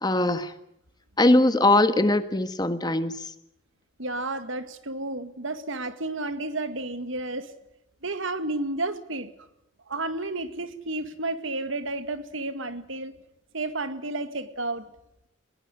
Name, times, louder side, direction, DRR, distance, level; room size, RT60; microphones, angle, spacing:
voice 1, 0.0-0.5 1.2-3.1, left 2 dB, 20° left, 11 dB, 1.5 m, -21 dB
voice 2, 4.0-7.5 8.0-9.3 9.9-13.1 13.5-14.9, right 2 dB, 80° right, 11 dB, 2.1 m, -31 dB
21.0 x 19.0 x 10.0 m, 0.79 s
head